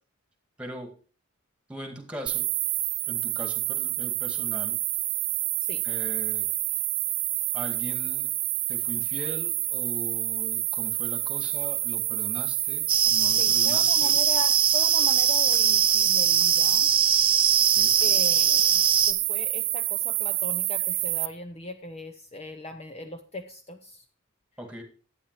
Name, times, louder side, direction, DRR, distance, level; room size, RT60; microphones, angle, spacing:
voice 1, 0.6-1.0 1.7-2.5 3.1-4.8 5.8-6.5 7.5-8.3 8.7-14.2 17.7-18.0 24.6-24.8, right 1 dB, 5° right, 5 dB, 2.0 m, -40 dB
sound 1, 2.3-21.3, right 18 dB, 65° right, 0.6 m, -28 dB
sound 2, 12.9-19.1, right 8 dB, 25° right, 0.6 m, -21 dB
voice 2, 13.3-16.9 18.0-24.1, left 3 dB, 30° left, 6 dB, 0.8 m, -39 dB
11.5 x 8.8 x 4.7 m, 0.38 s
head